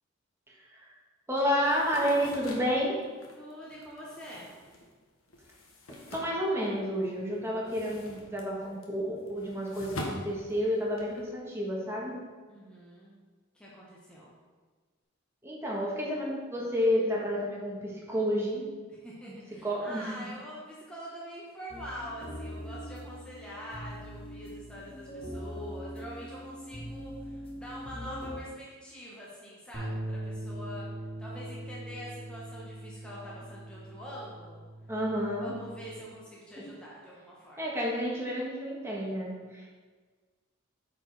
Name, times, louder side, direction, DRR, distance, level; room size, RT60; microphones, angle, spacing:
voice 1, 0.5-0.9 1.3-3.0 6.1-12.2 15.4-18.7 19.6-20.3 34.9-35.5 36.6-36.7 37.6-39.7, equal, 10° right, -4 dB, 1.5 m, -30 dB
sound 1, 1.6-7.0 7.3-11.2, left 1 dB, 90° left, 1.3 m, -44 dB
voice 2, 3.3-4.5 12.5-13.1 13.5-14.3 19.0-30.9 31.2-34.6 35.4-37.6, equal, 5° left, -6 dB, 1.2 m, -45 dB
sound 2, 21.7-28.4, equal, 25° left, 0.8 m, -42 dB
sound 3, 29.7-36.0, right 1 dB, 45° right, 2.2 m, -41 dB
8.7 x 4.9 x 4.1 m, 1.4 s
head